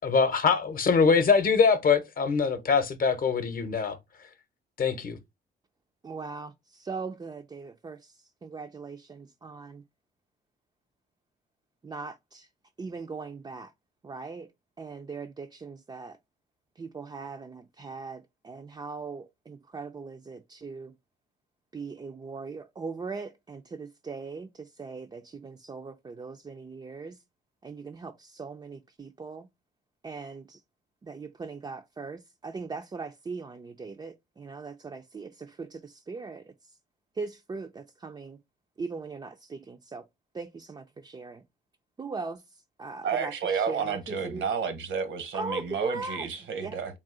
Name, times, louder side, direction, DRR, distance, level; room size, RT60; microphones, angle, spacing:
voice 1, 0.0-4.0 4.8-5.2, left 5 dB, 45° left, 0.8 m, -23 dB
voice 2, 6.0-9.8 11.8-12.5 12.8-13.7 14.0-14.5 14.8-16.2 16.8-20.9 21.7-27.2 27.6-29.5 30.0-30.6 31.0-36.7 37.1-38.4 38.8-40.0 40.3-41.4 42.0-42.4 42.8-44.4 45.3-46.3 46.6-46.8, right 4 dB, 20° right, 0.4 m, -39 dB
voice 3, 43.0-47.0, right 6 dB, 75° right, 0.9 m, -31 dB
3.7 x 2.4 x 3.7 m
cardioid pair, 90°, 20 cm